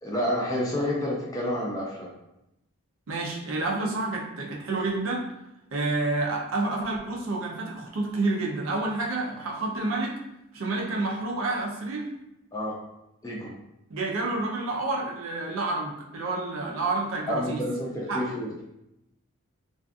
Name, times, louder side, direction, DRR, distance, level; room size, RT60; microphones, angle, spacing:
voice 1, 0.0-2.1 12.5-12.7 13.2-13.5 17.3-18.6, left 1 dB, 15° left, -4 dB, 0.4 m, -29 dB
voice 2, 3.1-5.3 5.7-10.2 10.5-12.1 13.9-17.6 18.1-18.2, right 2 dB, 65° right, -1 dB, 0.5 m, -29 dB
2.5 x 2.4 x 2.3 m, 0.86 s
head